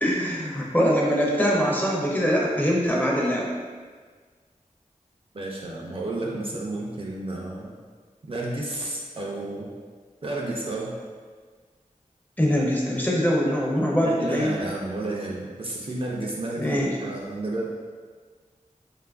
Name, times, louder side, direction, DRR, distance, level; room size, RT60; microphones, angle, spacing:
voice 1, 0.0-3.5 12.4-14.6 16.6-16.9, equal, 10° left, -3 dB, 0.5 m, -23 dB
voice 2, 5.3-7.7 8.3-9.7 10.2-10.9 14.0-17.7, right 2 dB, 40° right, -2 dB, 0.4 m, -31 dB
2.8 x 2.3 x 2.3 m, 1.5 s
wide cardioid pair, 40°, 14 cm